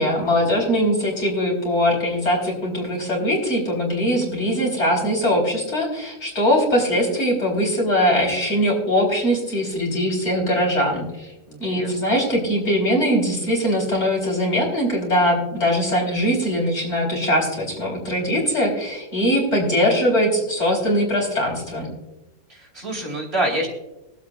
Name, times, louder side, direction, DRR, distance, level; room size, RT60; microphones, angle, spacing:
voice 1, 0.0-11.3 11.6-21.9, equal, 45° left, -3 dB, 4.6 m, -21 dB
voice 2, 11.5-12.0 22.5-23.7, right 1 dB, 40° right, -1 dB, 3.0 m, -27 dB
24.5 x 8.4 x 2.5 m, 1.0 s
omnidirectional pair, 1.7 m